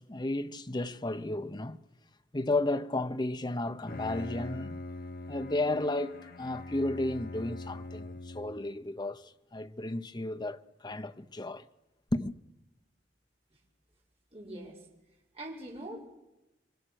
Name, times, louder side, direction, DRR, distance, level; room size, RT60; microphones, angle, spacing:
voice 1, 0.0-1.8 2.3-4.8 5.3-11.7 12.1-12.4, left 2 dB, 25° left, 0.8 m, -33 dB
Bowed string instrument, 3.7-8.7, left 2 dB, 55° left, 1.1 m, -42 dB
voice 2, 14.3-14.9 15.3-16.1, right 1 dB, 35° right, 6.0 m, -42 dB
27.5 x 24.5 x 6.5 m
head